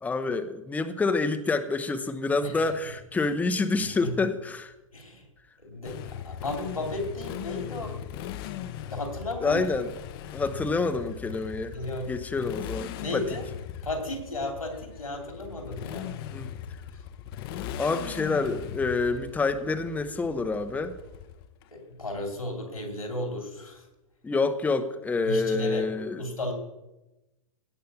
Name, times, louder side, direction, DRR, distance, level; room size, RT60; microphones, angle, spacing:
voice 1, 0.0-4.7 9.4-9.9 10.3-11.8 12.1-13.2 16.3-16.5 17.8-20.9 24.2-26.2, left 3 dB, 10° left, 10 dB, 0.8 m, -27 dB
voice 2, 4.9-5.2 5.6-6.0 6.2-8.0 8.9-9.6 11.7-12.1 13.0-13.4 13.8-16.1 21.7-23.8 25.2-25.8 26.2-26.5, left 1 dB, 80° left, 3 dB, 3.0 m, -34 dB
Motorcycle, 5.8-21.6, left 10 dB, 45° left, 0.8 m, -39 dB
16.5 x 5.6 x 7.0 m, 0.98 s
figure-of-eight pair, 100°, 18 cm